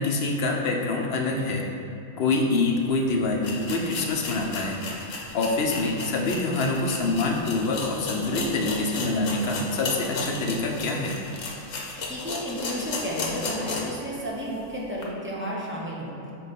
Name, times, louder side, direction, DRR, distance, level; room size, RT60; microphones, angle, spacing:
voice 1, 0.0-1.6 2.2-4.8 5.3-11.2, left 3 dB, 60° left, 1 dB, 0.9 m, -26 dB
sound 1, 2.9-3.0 3.4-14.0 14.4-14.5 15.0-15.1, left 3 dB, 80° left, 1.2 m, -34 dB
voice 2, 12.0-16.1, equal, 10° right, -5 dB, 0.8 m, -32 dB
4.4 x 4.2 x 5.3 m, 2.8 s
omnidirectional pair, 1.3 m